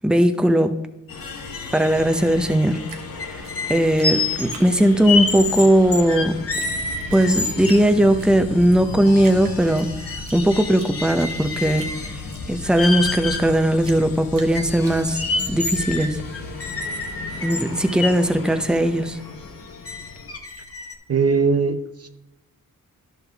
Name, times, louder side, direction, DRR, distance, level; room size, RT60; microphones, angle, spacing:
voice 1, 0.0-0.7 1.7-2.8 3.2-6.4 7.1-9.9 10.3-11.9 12.5-15.2 15.5-16.2 17.4-19.2, right 1 dB, ahead, 0.7 m, -18 dB
sound 1, 1.1-20.4, left 4 dB, 75° left, 1.2 m, -35 dB
Drip, 2.9-5.2 5.5-6.2 6.6-6.7 7.0-7.8 8.2-8.8 9.2-10.4 10.7-13.5 13.8-15.5, right 5 dB, 75° right, 1.2 m, -43 dB
sound 2, 3.2-8.0 8.5-8.6 8.9-10.2 10.5-12.2 12.6-13.5 14.0-14.1 14.5-18.1 18.8-18.9 19.4-19.5 19.9-21.0, left 3 dB, 40° left, 1.0 m, -27 dB
voice 2, 21.1-22.1, right 5 dB, 45° right, 0.6 m, -20 dB
11.0 x 5.6 x 3.5 m
cardioid pair, 55°, 34 cm